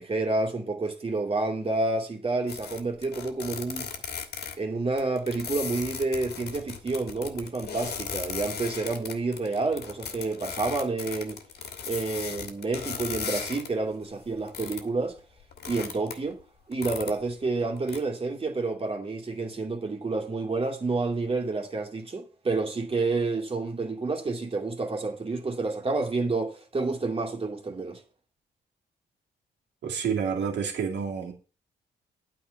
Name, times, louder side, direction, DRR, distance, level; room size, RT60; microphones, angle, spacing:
voice 1, 0.0-3.9 4.6-11.4 11.9-15.2 15.7-16.4 16.7-28.0, right 3 dB, 30° right, 2.5 m, -29 dB
sound 1, 2.5-4.5 5.0-13.7 14.0-14.9 15.2-16.3 16.7-17.4 17.8-18.0, left 6 dB, 65° left, 1.6 m, -37 dB
voice 2, 29.8-31.3, right 6 dB, 75° right, 2.5 m, -29 dB
9.1 x 4.8 x 6.4 m
cardioid pair, 80°, 18 cm